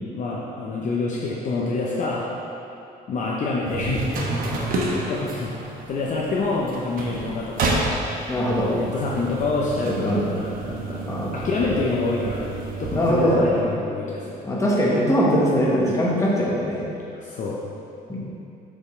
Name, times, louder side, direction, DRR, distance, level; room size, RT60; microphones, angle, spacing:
voice 1, 0.1-2.3 3.1-4.1 4.9-7.7 8.7-11.0 11.3-12.5 12.8-14.4 17.1-17.6, left 3 dB, 50° left, -4 dB, 0.7 m, -27 dB
sound 1, 3.6-13.5, right 2 dB, 60° right, 1.1 m, -30 dB
voice 2, 8.3-8.7 9.8-10.2 11.0-11.4 12.9-13.4 14.4-16.8 18.1-18.2, equal, 20° left, -5 dB, 1.4 m, -21 dB
7.9 x 5.4 x 3.2 m, 2.7 s
cardioid pair, 110°, 17 cm